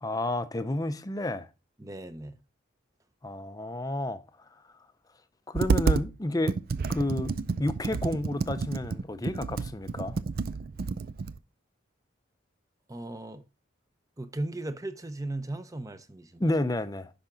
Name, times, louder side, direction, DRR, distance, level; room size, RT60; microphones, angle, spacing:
voice 1, 0.0-1.5 3.2-4.2 5.5-6.6 6.9-10.2 16.4-17.1, left 1 dB, 20° left, 0.6 m, -30 dB
voice 2, 1.8-2.4 12.9-13.4 14.2-16.5, right 2 dB, 15° right, 0.7 m, -37 dB
Computer keyboard, 5.5-6.1 6.5-11.4, right 4 dB, 50° right, 0.4 m, -29 dB
10.0 x 6.0 x 3.8 m
head